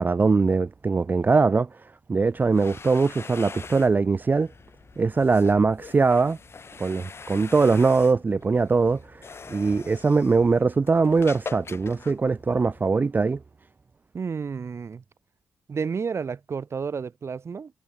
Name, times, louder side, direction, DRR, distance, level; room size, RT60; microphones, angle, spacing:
voice 1, 0.0-1.7 2.1-4.5 5.0-6.4 6.8-13.4, right 4 dB, 35° right, 0.5 m, -21 dB
sound 1, 2.3-12.9, left 5 dB, 50° left, 4.4 m, -44 dB
voice 2, 14.1-15.0 15.7-17.7, right 5 dB, 50° right, 7.3 m, -31 dB
supercardioid pair, 55°, 6 cm